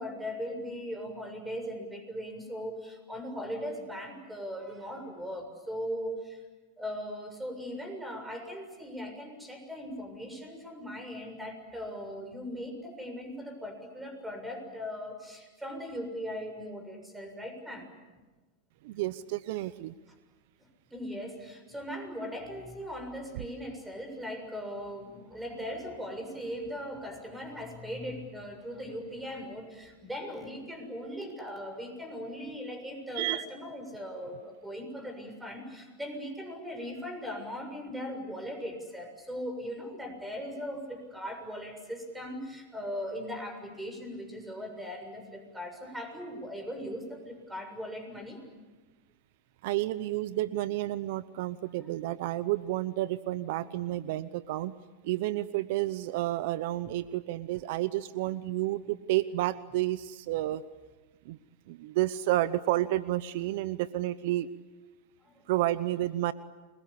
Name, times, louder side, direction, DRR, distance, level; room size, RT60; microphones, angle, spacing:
voice 1, 0.0-6.4 6.8-17.9 20.9-48.4 65.2-65.5, equal, 5° right, 6 dB, 6.9 m, -39 dB
voice 2, 18.8-19.9 23.3-23.4 33.1-33.5 49.6-54.7 55.0-60.6 61.2-61.4 61.7-64.5 65.5-66.3, right 15 dB, 65° right, 16 dB, 0.8 m, -30 dB
29.5 x 22.0 x 8.5 m, 1.2 s
hypercardioid pair, 115°, 0 cm